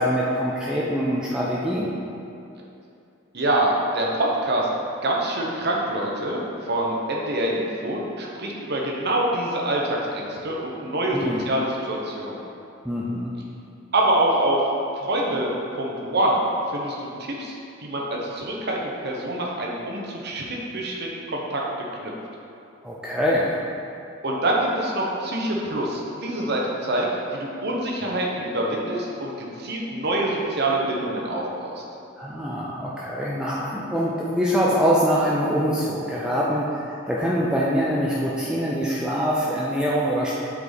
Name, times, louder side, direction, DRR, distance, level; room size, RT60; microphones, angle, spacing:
voice 1, 0.0-1.9 11.1-11.5 12.8-13.3 22.8-23.5 32.2-40.3, equal, 5° right, -6 dB, 0.5 m, -24 dB
voice 2, 3.3-4.7 5.0-12.4 13.9-14.6 15.0-16.4 16.7-21.6 22.0-22.1 24.2-31.8, right 1 dB, 55° right, -2 dB, 1.1 m, -25 dB
8.4 x 4.7 x 4.0 m, 2.6 s
head